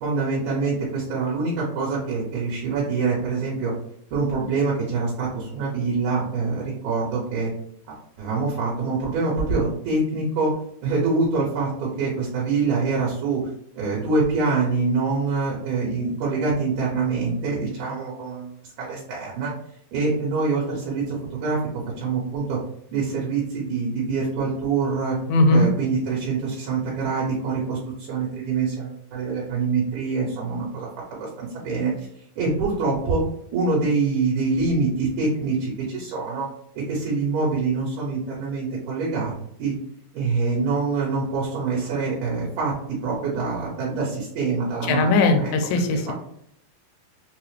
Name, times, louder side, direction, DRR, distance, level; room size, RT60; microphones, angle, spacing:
voice 1, 0.0-3.7 4.1-7.5 7.9-10.5 10.8-13.5 13.7-18.5 18.8-19.5 19.9-21.6 21.8-22.6 22.9-25.2 25.5-32.1 32.4-33.2 33.5-36.5 36.8-39.3 39.6-39.8 40.1-45.1 45.4-45.5 45.9-46.1, right 4 dB, 70° right, -4 dB, 2.2 m, -25 dB
voice 2, 25.3-25.7 44.9-46.1, left 2 dB, 80° left, 5 dB, 2.2 m, -19 dB
5.6 x 2.0 x 3.1 m, 0.68 s
omnidirectional pair, 4.0 m